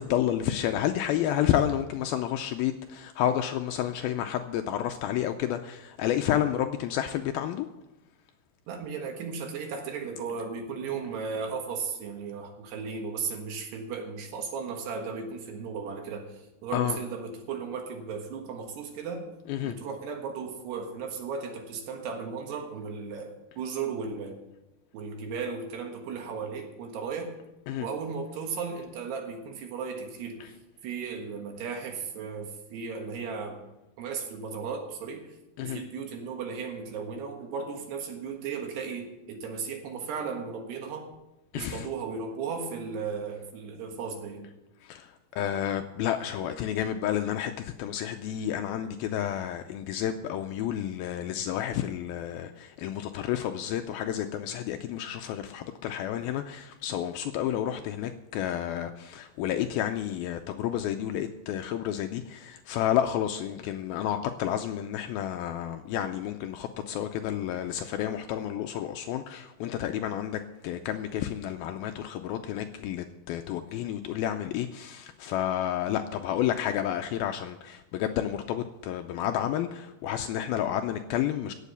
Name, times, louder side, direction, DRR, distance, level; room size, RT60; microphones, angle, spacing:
voice 1, 0.0-7.7 16.7-17.0 19.5-19.8 27.7-27.9 30.4-30.5 35.6-35.8 41.5-41.9 44.8-81.5, left 11 dB, 90° left, 6 dB, 2.1 m, -30 dB
voice 2, 8.7-19.2 19.6-24.4 24.9-27.3 27.8-30.4 30.8-33.6 34.0-35.4 35.6-41.1 41.5-44.5, right 5 dB, 75° right, 3 dB, 3.6 m, -35 dB
16.5 x 7.5 x 6.8 m, 0.96 s
omnidirectional pair, 4.9 m